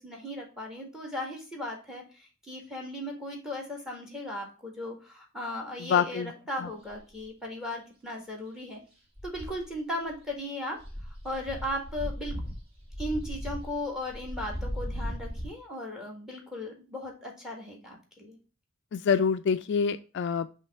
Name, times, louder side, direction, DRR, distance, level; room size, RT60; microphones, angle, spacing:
voice 1, 0.0-8.8 9.2-10.8 11.2-12.4 13.0-18.4, left 1 dB, 5° right, 1 dB, 1.8 m, -37 dB
voice 2, 5.8-6.3 6.6-6.7 18.9-20.5, left 6 dB, 55° left, 11 dB, 0.3 m, -26 dB
sound 1, 6.9-7.2 9.2-9.8 10.1-10.3 10.8-15.5, equal, 30° right, 1.5 m, -37 dB
5.5 x 3.2 x 5.4 m, 0.35 s
head